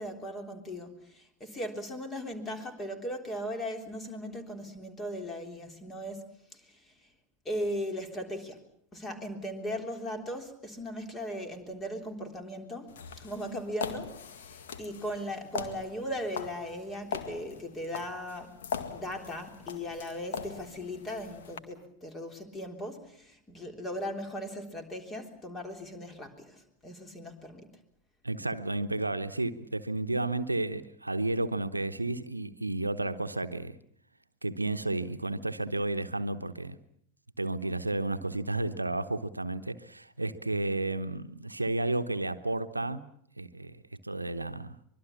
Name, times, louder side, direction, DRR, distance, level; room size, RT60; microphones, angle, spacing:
voice 1, 0.0-6.9 7.5-8.6 8.9-18.6 18.9-27.8, equal, 20° left, 3.6 m, -38 dB
sound 1, 12.9-21.6, left 7 dB, 60° left, 2.0 m, -41 dB
voice 2, 28.2-33.8 34.4-36.8 37.4-43.1 43.4-44.8, right 2 dB, 85° right, 1.0 m, -32 dB
24.5 x 23.0 x 7.2 m
figure-of-eight pair, 90°, 0 cm